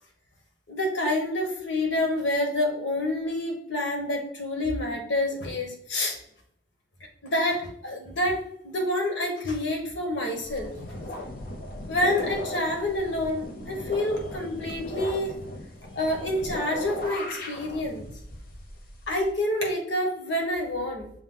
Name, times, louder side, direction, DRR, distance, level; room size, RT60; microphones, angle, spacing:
voice 1, 0.7-6.2 7.2-8.4 8.6-10.7 11.8-15.3 15.9-18.1 19.1-21.1, left 1 dB, 85° left, 2 dB, 1.2 m, -28 dB
sound 1, 10.4-19.3, left 1 dB, 50° left, 0.7 m, -38 dB
6.2 x 2.3 x 3.8 m, 0.73 s
head